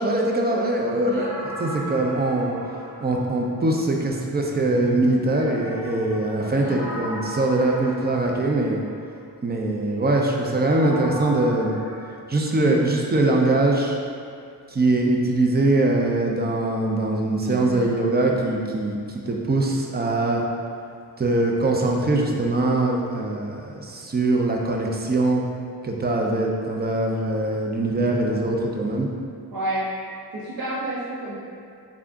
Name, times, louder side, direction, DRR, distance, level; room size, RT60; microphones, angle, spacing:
voice 1, 0.0-2.6 3.0-8.8 9.4-11.8 12.3-14.0 14.7-20.4 21.2-25.5 25.8-29.1, right 2 dB, 25° right, 0 dB, 0.5 m, -22 dB
sound 1, 1.1-4.0 5.3-9.1 10.7-12.1, equal, 15° left, 1.4 m, -37 dB
voice 2, 6.3-6.8 17.5-17.9 29.5-29.8 30.3-31.4, right 2 dB, 60° right, -8 dB, 0.7 m, -30 dB
3.7 x 3.4 x 2.5 m, 2.3 s
cardioid pair, 65°, 41 cm